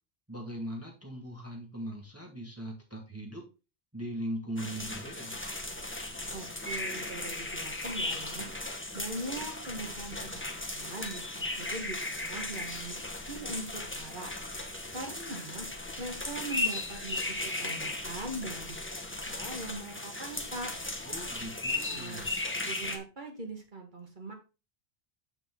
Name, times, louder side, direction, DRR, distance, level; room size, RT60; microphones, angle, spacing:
voice 1, 0.3-3.5 3.9-5.4 21.0-22.3, equal, 15° right, 0 dB, 1.7 m, -39 dB
sound 1, 4.6-23.0, left 2 dB, 10° left, 1.0 m, -36 dB
voice 2, 6.3-8.5 8.9-13.0 13.3-14.3 14.9-15.7 16.0-20.7 21.9-22.3 22.7-24.3, right 2 dB, 45° right, 2 dB, 1.9 m, -41 dB
6.9 x 6.2 x 3.6 m, 0.30 s
omnidirectional pair, 1.1 m